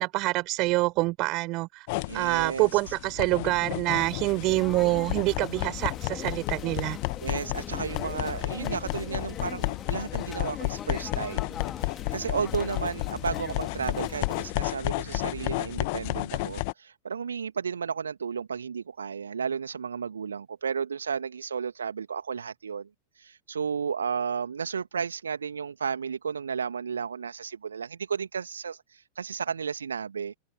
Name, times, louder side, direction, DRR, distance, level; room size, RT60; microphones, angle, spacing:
voice 1, 0.0-1.9 2.1-7.0, right 22 dB, 40° right, 5.4 m, -26 dB
sound 1, 1.9-16.7, left 26 dB, 50° left, 1.7 m, -32 dB
voice 2, 2.0-2.9 7.2-22.9 23.2-30.4, right 6 dB, 70° right, 1.9 m, -33 dB
sound 2, 4.0-14.5, left 9 dB, 25° left, 2.7 m, -40 dB
open air
figure-of-eight pair, 90°, 0 cm